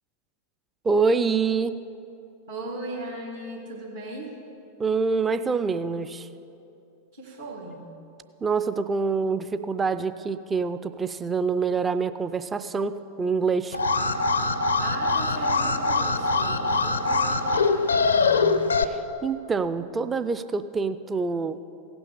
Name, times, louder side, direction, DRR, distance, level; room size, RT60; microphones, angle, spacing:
voice 1, 0.8-1.8 4.8-6.3 8.4-13.8 18.9-21.6, right 4 dB, 15° right, 11 dB, 0.4 m, -26 dB
voice 2, 2.5-4.3 7.1-7.9 14.8-18.6, right 2 dB, 75° right, -3 dB, 1.7 m, -37 dB
Alarm, 13.7-18.8, left 3 dB, 75° left, 0.5 m, -23 dB
16.5 x 6.1 x 6.6 m, 2.8 s
figure-of-eight pair, 90°, 0 cm